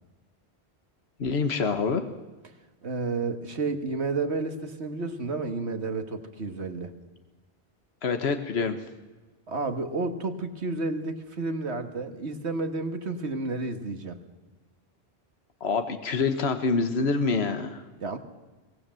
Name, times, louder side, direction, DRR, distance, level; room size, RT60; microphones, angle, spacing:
voice 1, 1.2-2.0 8.0-8.8 15.6-17.8, left 4 dB, 75° left, 8 dB, 1.5 m, -26 dB
voice 2, 2.8-6.9 9.5-14.2 18.0-18.2, right 3 dB, 90° right, 7 dB, 2.0 m, -31 dB
23.5 x 19.0 x 7.7 m, 1.2 s
omnidirectional pair, 1.1 m